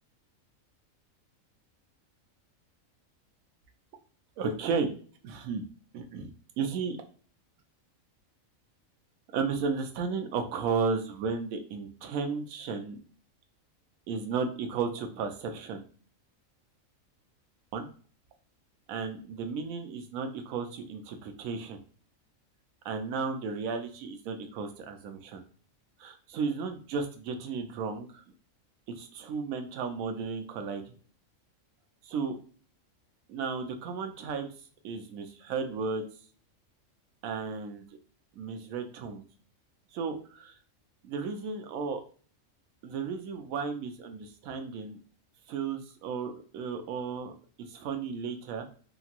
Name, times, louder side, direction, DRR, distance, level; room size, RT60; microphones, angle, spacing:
voice 1, 4.4-4.9 5.2-5.6 5.9-6.3 6.6-7.0 9.3-13.0 14.1-15.8 17.7-17.9 18.9-21.8 22.8-25.4 26.0-28.2 28.9-30.9 32.0-32.4 33.3-34.5 34.8-36.0 37.2-37.8 38.4-39.2 39.9-40.6 41.0-42.0 42.8-45.0 45.5-47.3 47.7-48.7, right 5 dB, 80° right, 5 dB, 1.0 m, -34 dB
2.9 x 2.6 x 2.4 m, 0.42 s
omnidirectional pair, 1.4 m